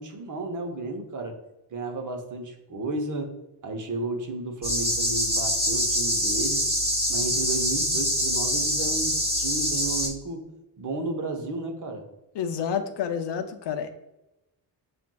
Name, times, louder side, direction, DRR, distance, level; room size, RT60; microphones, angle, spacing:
voice 1, 0.0-1.4 1.7-3.3 3.6-6.7 7.1-10.4 10.8-12.1, right 2 dB, 45° right, 4 dB, 0.8 m, -33 dB
sound 1, 4.6-10.1, equal, 15° right, 1.3 m, -25 dB
voice 2, 12.3-13.9, left 7 dB, 80° left, 7 dB, 0.6 m, -29 dB
7.3 x 2.5 x 2.2 m, 0.94 s
wide cardioid pair, 155°, 42 cm